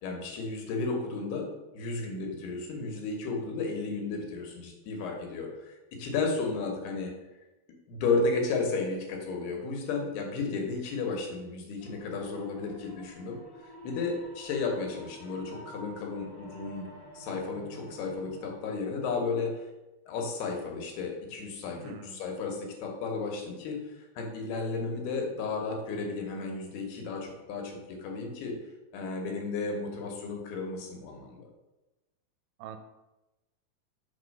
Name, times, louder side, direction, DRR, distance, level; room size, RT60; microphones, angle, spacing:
voice 1, 0.0-1.5 1.7-7.1 7.9-13.4 13.8-16.9 17.1-19.5 20.1-23.8 24.2-28.6 28.9-31.5, left 4 dB, 90° left, 2 dB, 3.2 m, -33 dB
sound 1, 11.8-18.6, right 1 dB, 35° left, 0.4 m, -50 dB
voice 2, 21.8-22.2 32.6-32.8, right 8 dB, 80° right, 7 dB, 2.1 m, -44 dB
6.7 x 4.0 x 5.3 m, 1.0 s
omnidirectional pair, 4.5 m